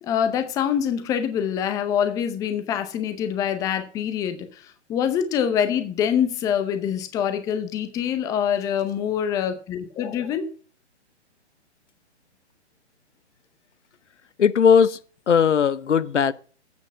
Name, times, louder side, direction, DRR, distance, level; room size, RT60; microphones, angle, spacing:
voice 1, 0.0-4.5 4.9-10.5, left 8 dB, 10° left, 0.6 m, -25 dB
voice 2, 14.4-15.0 15.3-16.3, left 7 dB, 90° left, 0.8 m, -18 dB
8.5 x 6.5 x 6.1 m
hypercardioid pair, 145°, 35 cm